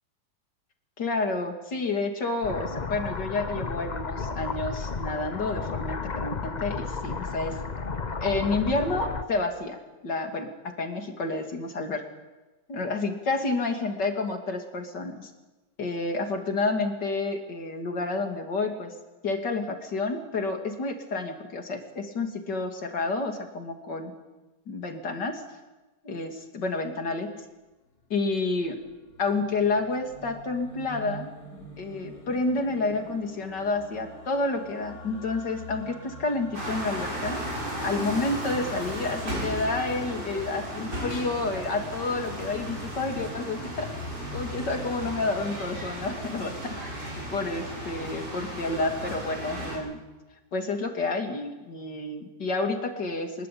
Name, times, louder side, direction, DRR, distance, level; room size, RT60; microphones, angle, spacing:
voice 1, 1.0-7.6 8.2-10.5 10.8-12.0 12.7-15.3 15.8-19.0 19.2-24.1 24.7-25.4 26.0-27.4 28.1-28.8 29.2-31.3 31.8-37.4 37.8-43.9 44.3-46.8 47.0-50.0 50.5-53.5, left 3 dB, 85° left, 4 dB, 3.5 m, -29 dB
sound 1, 2.4-9.2, left 4 dB, 30° left, 1.0 m, -33 dB
sound 2, 28.0-46.0, left 1 dB, 60° left, 4.1 m, -46 dB
sound 3, 36.5-49.8, equal, 75° right, 8.7 m, -35 dB
24.5 x 21.5 x 8.7 m, 1.2 s
omnidirectional pair, 1.8 m